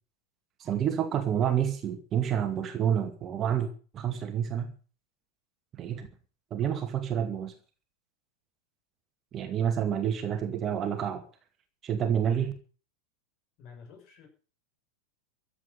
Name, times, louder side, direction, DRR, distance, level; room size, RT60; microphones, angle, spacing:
voice 1, 0.6-3.7 3.9-4.7 5.8-6.1 6.5-7.5 9.3-11.2 11.8-12.5, right 9 dB, 30° right, 7 dB, 2.2 m, -28 dB
voice 2, 13.6-14.3, left 5 dB, 40° left, 4 dB, 6.8 m, -50 dB
15.0 x 8.5 x 9.2 m, 0.39 s
figure-of-eight pair, 90°, 0 cm